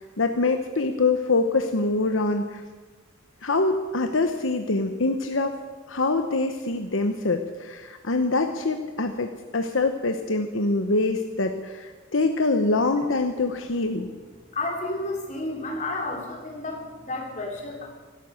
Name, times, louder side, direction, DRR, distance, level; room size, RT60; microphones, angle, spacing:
voice 1, 0.0-2.6 3.4-5.6 5.9-14.1, left 3 dB, 75° left, 6 dB, 1.0 m, -24 dB
voice 2, 14.5-17.9, left 2 dB, 35° left, 0 dB, 3.3 m, -31 dB
16.5 x 13.0 x 6.4 m, 1.4 s
head